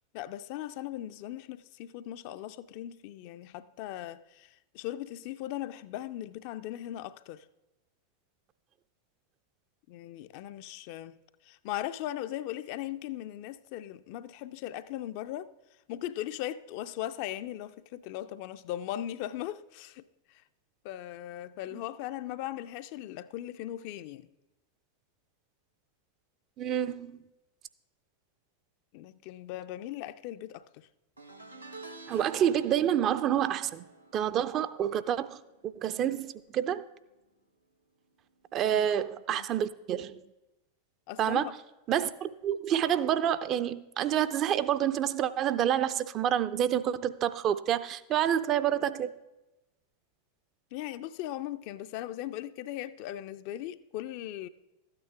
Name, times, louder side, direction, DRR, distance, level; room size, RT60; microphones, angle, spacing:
voice 1, 0.1-7.4 9.9-11.2 11.4-15.5 15.9-20.0 20.3-20.4 20.8-24.3 28.9-30.9 38.6-38.8 39.3-39.5 41.1-41.5 50.7-54.5, left 13 dB, 45° left, 0.4 m, -38 dB
voice 2, 26.6-27.2 32.1-33.8 34.1-36.8 38.5-40.2 41.2-41.5 41.9-49.1, right 10 dB, 35° right, 0.4 m, -28 dB
sound 1, 31.2-36.6 36.8-37.2 38.4-38.5, right 3 dB, 85° right, 0.8 m, -51 dB
13.0 x 8.9 x 3.4 m
figure-of-eight pair, 90°, 0 cm